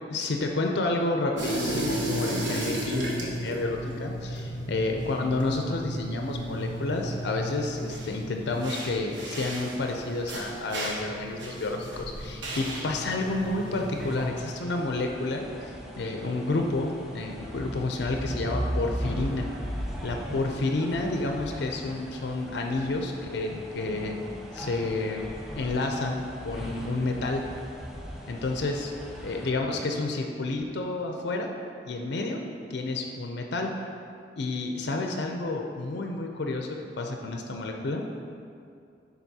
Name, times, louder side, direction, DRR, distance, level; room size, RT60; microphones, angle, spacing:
voice 1, 0.1-19.5 20.0-24.2 24.5-25.3 25.6-27.4 28.3-28.9 29.2-31.5 31.9-32.4 32.7-33.7 34.4-38.0, left 2 dB, 65° left, 2 dB, 0.5 m, -30 dB
sound 1, 1.4-14.3, right 1 dB, 75° right, 1.2 m, -34 dB
sound 2, 12.8-29.5, equal, 5° right, 0.6 m, -38 dB
10.5 x 4.0 x 2.8 m, 2.4 s
head